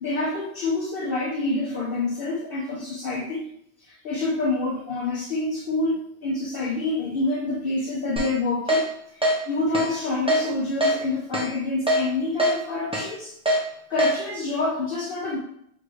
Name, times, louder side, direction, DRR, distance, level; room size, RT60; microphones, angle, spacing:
voice 1, 0.0-3.5 3.9-8.8 9.1-13.3 13.9-15.4, left 2 dB, 60° left, -3 dB, 0.8 m, -27 dB
Keyboard (musical), 8.2-8.3 8.7-8.8 9.2-9.4 9.7-9.9 10.3-10.4 10.8-10.9 11.3-11.5 11.9-12.0 12.4-12.5 12.9-13.1 13.5-13.6 14.0-14.1, equal, 5° right, 0.6 m, -21 dB
4.1 x 3.1 x 3.4 m, 0.73 s
omnidirectional pair, 1.1 m